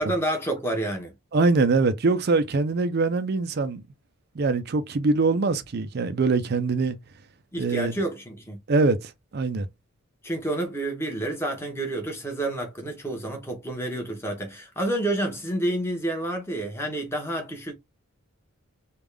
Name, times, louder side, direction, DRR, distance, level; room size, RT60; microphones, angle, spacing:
voice 1, 0.0-1.1 7.5-8.6 10.2-17.7, right 1 dB, 10° left, 1.0 m, -29 dB
voice 2, 1.3-3.8 4.4-7.0 7.6-7.9 8.7-9.7, right 3 dB, 50° right, 0.5 m, -23 dB
3.5 x 2.4 x 3.2 m
head